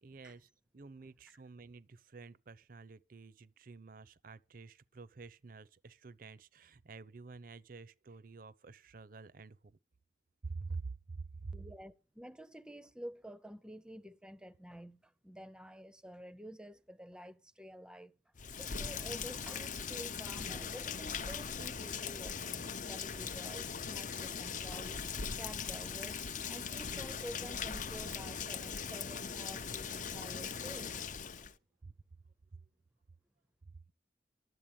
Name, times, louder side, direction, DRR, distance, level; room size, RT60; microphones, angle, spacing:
voice 1, 0.0-9.8 10.4-11.5 31.3-31.5 31.8-31.9 32.5-32.6, right 4 dB, 50° right, 0.6 m, -48 dB
voice 2, 11.5-18.1 18.6-25.0 25.4-26.2 26.5-31.0, equal, 5° right, 0.6 m, -50 dB
Rain, 18.3-31.5, left 6 dB, 45° left, 0.6 m, -40 dB
12.5 x 8.1 x 8.9 m
head